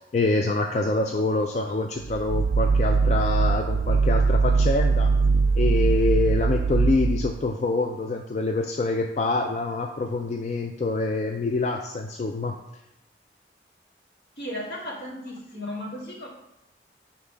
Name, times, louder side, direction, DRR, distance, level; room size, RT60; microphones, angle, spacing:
voice 1, 0.0-5.1 5.6-12.6, left 3 dB, 40° left, 3 dB, 0.3 m, -26 dB
sound 1, 2.0-7.5, right 4 dB, 90° right, 0.3 m, -21 dB
voice 2, 14.4-16.3, left 1 dB, 70° left, -3 dB, 1.8 m, -35 dB
5.7 x 3.5 x 5.1 m, 0.87 s
head